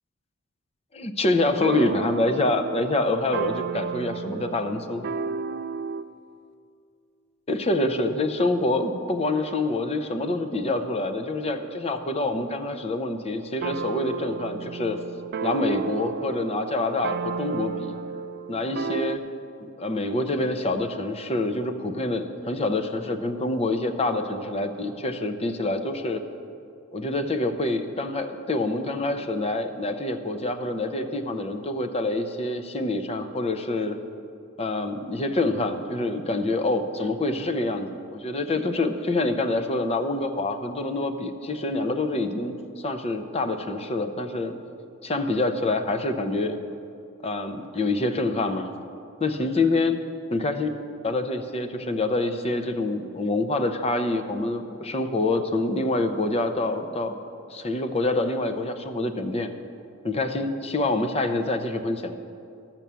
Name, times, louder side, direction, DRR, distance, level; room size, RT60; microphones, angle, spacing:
voice 1, 0.9-5.0 7.5-15.0 15.4-17.9 18.5-19.2 19.6-26.2 26.9-34.0 34.6-42.5 42.8-44.5 45.0-46.6 47.2-48.7 49.2-50.0 50.3-50.7 51.0-57.2 57.5-59.5 60.0-62.2, left 2 dB, 30° left, 7 dB, 0.6 m, -26 dB
sound 1, 1.4-6.1 13.6-19.2, right 5 dB, 50° right, 0.3 m, -32 dB
12.0 x 7.4 x 6.9 m, 2.5 s
head